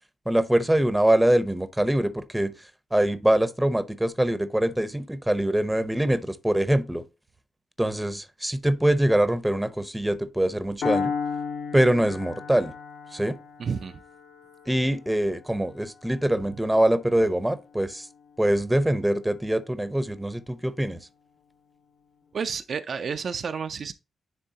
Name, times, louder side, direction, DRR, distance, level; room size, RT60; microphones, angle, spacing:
voice 1, 0.3-2.5 2.9-7.0 7.8-11.1 11.7-12.7 13.1-13.4 14.7-18.1 18.4-21.0, right 1 dB, 5° right, 0.7 m, -23 dB
Piano, 10.8-18.7, left 6 dB, 85° left, 1.4 m, -35 dB
voice 2, 13.6-14.0 22.3-23.9, right 6 dB, 55° right, 0.4 m, -30 dB
10.0 x 3.7 x 2.8 m
cardioid pair, 115°, 0 cm